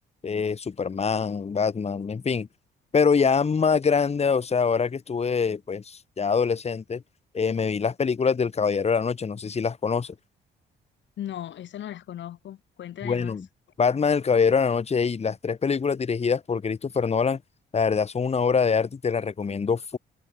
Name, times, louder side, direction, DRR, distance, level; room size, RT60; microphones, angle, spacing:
voice 1, 0.2-2.5 2.9-7.0 7.3-10.1 13.0-13.5 13.8-17.4 17.7-20.0, left 5 dB, 30° left, 1.5 m, -24 dB
voice 2, 11.2-13.4, left 11 dB, 65° left, 1.4 m, -37 dB
cardioid pair, 90°, 20 cm